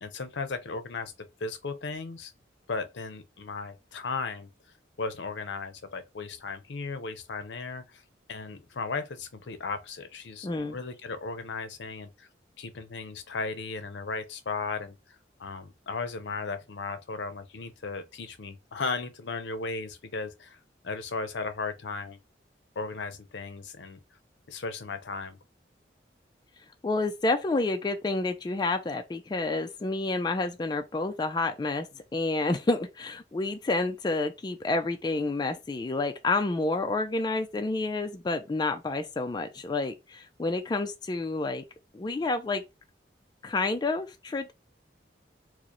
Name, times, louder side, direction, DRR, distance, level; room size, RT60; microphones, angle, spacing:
voice 1, 0.0-2.3 2.7-4.5 5.0-8.0 8.3-12.3 12.6-15.0 15.4-20.6 20.8-22.2 22.8-24.0 24.5-25.4, left 4 dB, 75° left, 0.6 m, -36 dB
voice 2, 10.4-10.8 26.8-31.9 32.1-41.6 41.9-42.6 43.4-44.5, left 2 dB, 25° left, 0.3 m, -29 dB
4.8 x 2.0 x 2.9 m
head